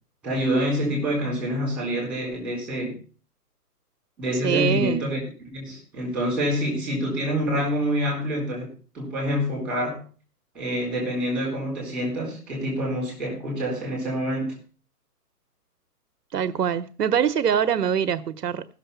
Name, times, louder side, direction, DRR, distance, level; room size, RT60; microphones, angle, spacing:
voice 1, 0.2-3.0 4.2-10.0 10.5-14.6, equal, ahead, 3.9 m, -27 dB
voice 2, 4.4-5.1 16.3-18.6, right 8 dB, 80° right, 0.9 m, -23 dB
15.0 x 6.6 x 5.7 m
hypercardioid pair, 165°, 47 cm